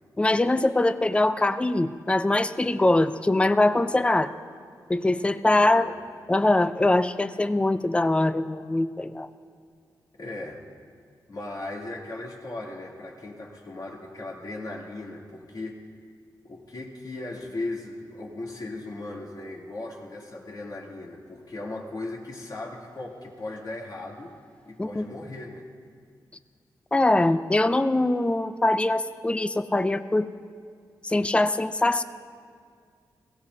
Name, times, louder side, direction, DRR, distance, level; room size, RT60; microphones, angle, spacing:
voice 1, 0.2-4.3 4.9-5.9 6.3-9.3 24.8-25.0 26.9-30.3 31.0-32.0, left 2 dB, 15° left, 11 dB, 0.5 m, -22 dB
voice 2, 10.2-10.6 11.3-15.8 16.4-24.4 24.7-25.6, left 2 dB, 55° left, -4 dB, 2.9 m, -37 dB
21.0 x 16.5 x 2.8 m, 2.1 s
cardioid pair, 70°, 8 cm